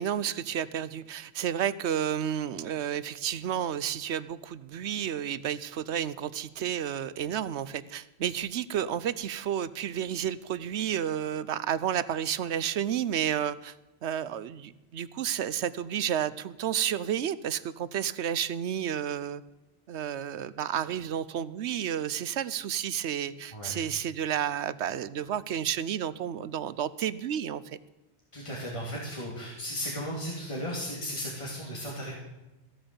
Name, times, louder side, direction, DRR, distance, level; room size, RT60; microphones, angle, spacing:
voice 1, 0.0-13.8 14.0-19.4 19.9-27.8, right 9 dB, 80° right, 17 dB, 1.0 m, -31 dB
voice 2, 28.3-32.1, equal, 25° left, -4 dB, 2.8 m, -35 dB
15.5 x 9.0 x 7.0 m, 1.0 s
omnidirectional pair, 1.2 m